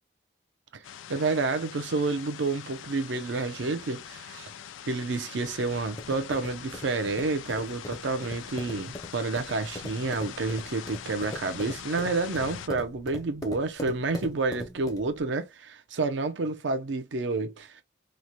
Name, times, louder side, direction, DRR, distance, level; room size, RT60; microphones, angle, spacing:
sound 1, 0.8-12.7, left 9 dB, 90° left, 0.3 m, -43 dB
voice 1, 1.1-4.5 4.9-17.8, right 3 dB, 75° right, 0.5 m, -29 dB
sound 2, 5.6-15.2, left 1 dB, 20° left, 0.4 m, -41 dB
3.1 x 2.1 x 2.6 m
head